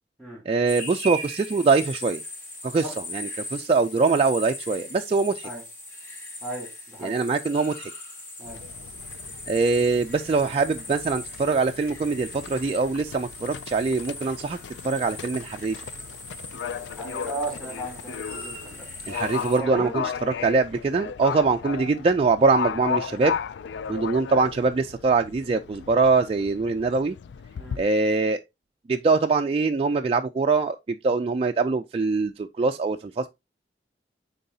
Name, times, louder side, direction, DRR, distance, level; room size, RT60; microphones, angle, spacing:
voice 1, 0.5-2.2 2.6-2.8 3.1-5.5 7.0-7.9 9.5-14.6 14.8-15.8 19.1-20.0 20.4-23.4 23.9-27.2 27.8-28.4 28.9-33.3, right 4 dB, 35° right, 0.3 m, -23 dB
sound 1, 0.7-19.6, left 1 dB, 50° left, 3.5 m, -39 dB
voice 2, 6.4-7.2 8.4-8.6 16.7-18.9 19.5-20.1 27.5-27.8, right 1 dB, 5° left, 3.0 m, -36 dB
Livestock farm animals working animals, 8.4-27.8, left 7 dB, 75° left, 0.3 m, -36 dB
9.1 x 3.9 x 2.7 m
head